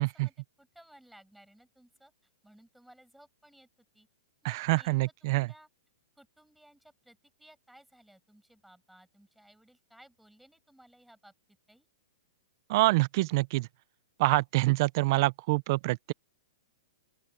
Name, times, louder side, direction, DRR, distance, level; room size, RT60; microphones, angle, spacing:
voice 1, 0.0-2.1 2.4-3.7 3.9-4.1 4.4-5.7 6.2-11.3 11.7-11.9, right 1 dB, ahead, 7.3 m, -59 dB
voice 2, 4.4-5.5 12.7-13.7 14.2-16.1, right 21 dB, 50° right, 0.7 m, -26 dB
open air
hypercardioid pair, 135°, 3 cm